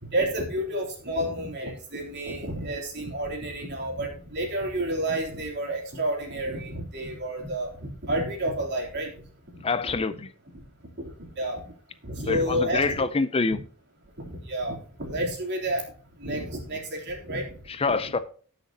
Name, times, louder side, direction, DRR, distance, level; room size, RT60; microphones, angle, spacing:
voice 1, 0.0-9.1 9.5-9.9 11.0-11.1 11.4-11.6 12.0-13.1 14.2-15.8 16.2-17.5 17.9-18.1, right 1 dB, 50° right, 0 dB, 3.4 m, -30 dB
voice 2, 9.6-10.3 12.3-13.6 17.8-18.2, left 4 dB, 25° left, 13 dB, 0.5 m, -25 dB
18.0 x 6.6 x 2.9 m, 0.43 s
head